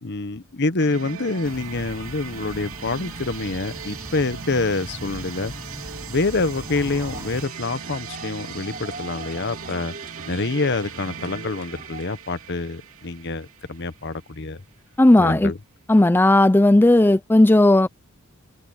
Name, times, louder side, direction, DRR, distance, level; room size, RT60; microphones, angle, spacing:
voice 1, 0.0-5.5 6.1-9.9 10.2-14.6 15.2-15.6, left 3 dB, 55° left, 1.1 m, -26 dB
sound 1, 0.8-14.5, right 6 dB, 75° right, 2.9 m, -39 dB
sound 2, 1.4-7.5, equal, 15° right, 6.3 m, -39 dB
sound 3, 7.0-12.0, right 2 dB, 40° right, 5.4 m, -41 dB
voice 2, 15.0-15.5 15.9-17.9, left 1 dB, 10° left, 0.4 m, -15 dB
open air
head